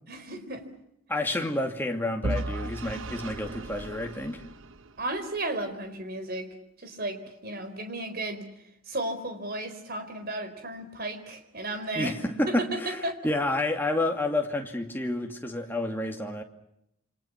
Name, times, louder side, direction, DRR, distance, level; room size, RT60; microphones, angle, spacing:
voice 1, 0.1-0.6 5.0-6.5 6.8-8.4 8.9-12.1 12.5-13.2, right 2 dB, 45° right, 4.3 m, -34 dB
voice 2, 1.1-4.4 12.0-16.4, left 2 dB, 10° left, 2.5 m, -29 dB
Vehicle / Engine, 2.2-5.2, right 2 dB, 60° right, 1.2 m, -35 dB
28.5 x 26.0 x 6.0 m
head